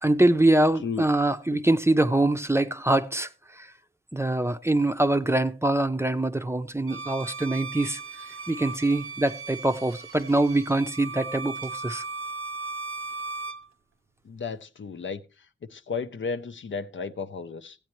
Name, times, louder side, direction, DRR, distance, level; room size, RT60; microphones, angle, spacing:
voice 1, 0.0-3.7 4.1-8.0 8.3-12.0, right 2 dB, 10° right, 0.6 m, -24 dB
Bowed string instrument, 6.9-13.7, right 4 dB, 85° right, 0.7 m, -37 dB
voice 2, 14.3-15.2 15.7-17.8, left 5 dB, 65° left, 0.6 m, -33 dB
16.0 x 8.5 x 3.0 m
wide cardioid pair, 70°, 21 cm